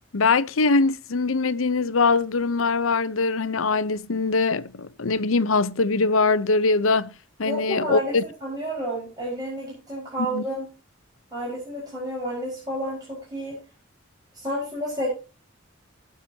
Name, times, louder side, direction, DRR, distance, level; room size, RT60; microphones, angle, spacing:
voice 1, 0.1-7.1 7.4-8.2 10.2-10.4, left 3 dB, 85° left, 0.8 m, -22 dB
voice 2, 7.4-10.7 11.3-13.6 14.3-15.1, equal, 20° right, 5.4 m, -30 dB
20.5 x 7.0 x 2.8 m
head